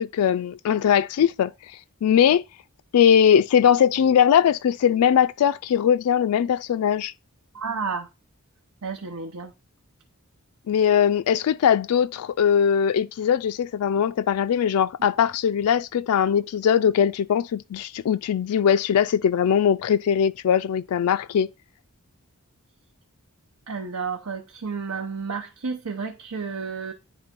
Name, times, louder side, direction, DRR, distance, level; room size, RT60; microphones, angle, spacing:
voice 1, 0.0-2.4 2.9-7.1 10.7-21.5, left 8 dB, 80° left, 0.3 m, -20 dB
voice 2, 7.5-8.1 8.8-9.5 23.7-26.9, right 5 dB, 80° right, 0.9 m, -31 dB
9.6 x 3.6 x 5.2 m
head